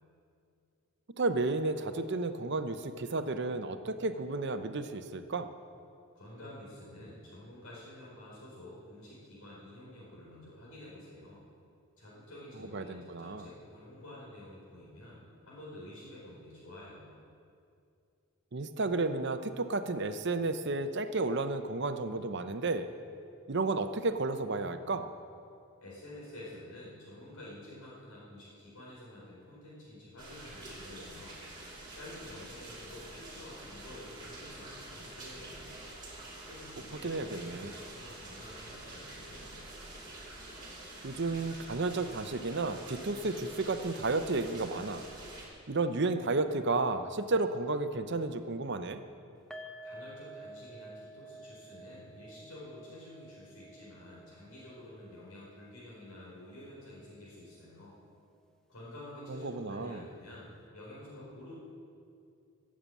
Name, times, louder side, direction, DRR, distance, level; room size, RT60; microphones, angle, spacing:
voice 1, 1.2-5.5 12.7-13.5 18.5-22.9 23.5-25.1 37.0-37.7 41.0-45.0 45.7-49.0 59.3-60.0, right 3 dB, 50° right, 9 dB, 0.7 m, -32 dB
voice 2, 6.1-11.4 12.0-17.2 25.8-31.4 31.9-35.8 36.4-39.6 49.8-57.9 58.7-61.6, left 1 dB, 80° left, -7 dB, 4.1 m, -49 dB
sound 1, 30.2-45.5, right 2 dB, 20° right, 2.9 m, -47 dB
sound 2, 49.5-56.7 57.0-57.2 57.5-57.6, right 1 dB, 5° left, 0.7 m, -51 dB
14.5 x 7.5 x 8.4 m, 2.4 s
head